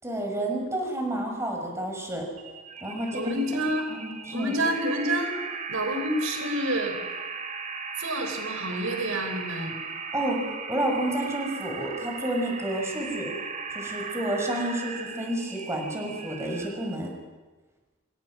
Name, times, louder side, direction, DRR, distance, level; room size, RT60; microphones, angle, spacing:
voice 1, 0.0-2.2 2.8-3.4 3.9-4.8 10.1-10.4 10.7-13.3 13.7-17.1, right 1 dB, 15° right, 2 dB, 6.0 m, -30 dB
sound 1, 2.4-17.0, right 5 dB, 35° right, 2.8 m, -37 dB
voice 2, 3.1-3.8 4.3-5.4 5.7-7.0 8.0-9.8, right 1 dB, 85° right, 6 dB, 4.4 m, -28 dB
27.5 x 24.5 x 6.2 m, 1.3 s
head